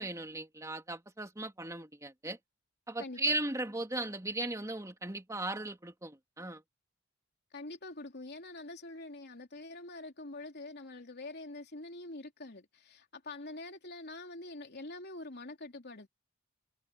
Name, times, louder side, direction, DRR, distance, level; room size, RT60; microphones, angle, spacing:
voice 1, 0.0-2.4 2.9-6.6, right 2 dB, 15° right, 2.5 m, -37 dB
voice 2, 3.0-3.4 7.5-16.1, left 2 dB, 55° left, 3.4 m, -45 dB
head